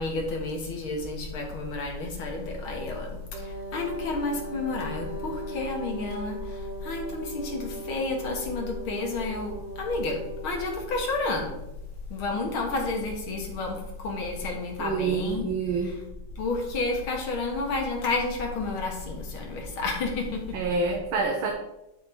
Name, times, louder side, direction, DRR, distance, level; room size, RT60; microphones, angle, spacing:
voice 1, 0.0-11.6 12.1-15.5 15.8-16.0 16.4-20.6, left 3 dB, 75° left, 1 dB, 2.4 m, -31 dB
Wind instrument woodwind instrument, 3.3-11.4, right 1 dB, 55° right, 2.6 m, -39 dB
voice 2, 14.8-15.9 20.5-21.5, right 4 dB, 75° right, 2 dB, 1.6 m, -27 dB
11.0 x 4.0 x 4.5 m, 0.91 s
omnidirectional pair, 2.3 m